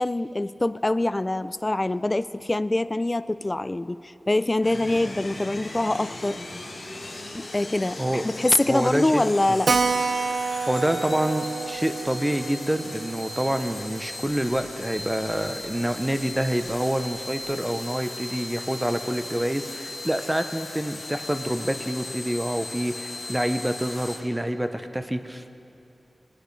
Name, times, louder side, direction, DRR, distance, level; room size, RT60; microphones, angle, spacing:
voice 1, 0.0-6.4 7.3-9.7, left 2 dB, 30° left, 14 dB, 0.3 m, -24 dB
sound 1, 4.6-24.2, left 2 dB, 90° left, 1.9 m, -38 dB
voice 2, 8.7-9.3 10.7-25.6, right 1 dB, 15° right, 8 dB, 0.7 m, -27 dB
Keyboard (musical), 9.7-14.7 15.0-15.1 15.4-15.5 15.7-15.8 16.4-16.7, right 4 dB, 70° right, 0.3 m, -29 dB
21.0 x 10.0 x 3.3 m, 2.7 s
wide cardioid pair, 60°, 0 cm